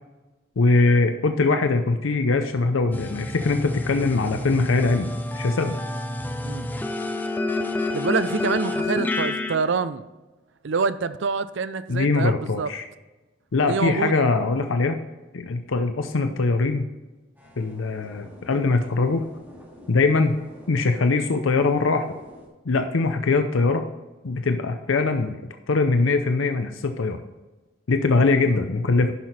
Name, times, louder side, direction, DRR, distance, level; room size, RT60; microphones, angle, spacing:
voice 1, 0.6-5.8 11.9-12.9 13.5-15.0 15.3-16.9 17.6-19.2 19.9-20.3 20.7-22.1 22.7-23.8 24.2-25.4 25.7-27.2 27.9-29.1, left 3 dB, 75° left, 7 dB, 0.6 m, -22 dB
sound 1, 2.9-9.5, left 2 dB, 10° left, 0.5 m, -28 dB
voice 2, 7.9-10.1 10.6-12.7 13.6-14.3, right 5 dB, 60° right, 13 dB, 0.5 m, -26 dB
sound 2, 17.4-22.5, left 1 dB, 10° right, 2.4 m, -47 dB
11.0 x 6.0 x 4.2 m, 1.1 s
head